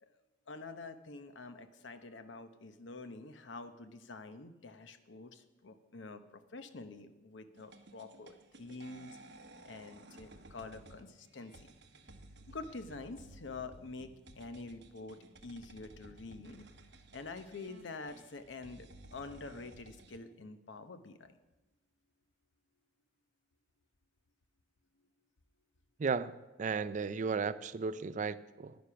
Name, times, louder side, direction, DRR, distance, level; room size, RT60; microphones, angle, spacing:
voice 1, 0.5-9.2 9.6-11.7 12.5-16.7 17.1-21.4, left 3 dB, 85° left, 9 dB, 0.9 m, -47 dB
sound 1, 7.5-20.2, right 1 dB, 65° right, 1.1 m, -56 dB
voice 2, 26.0-28.8, right 5 dB, 45° right, 15 dB, 0.4 m, -35 dB
10.5 x 9.5 x 5.8 m, 1.1 s
head